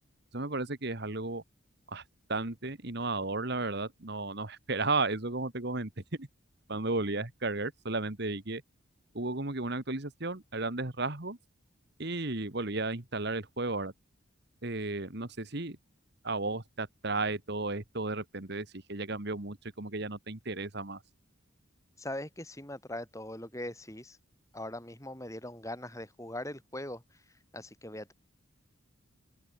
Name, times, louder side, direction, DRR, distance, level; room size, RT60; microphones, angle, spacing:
voice 1, 0.3-1.4 1.9-2.0 2.3-5.9 6.2-6.3 6.7-8.6 9.1-11.4 12.0-13.9 14.6-15.8 16.2-21.0, right 3 dB, 50° right, 1.7 m, -34 dB
voice 2, 22.0-24.2 24.5-27.0 27.5-28.1, left 1 dB, 15° left, 5.1 m, -41 dB
head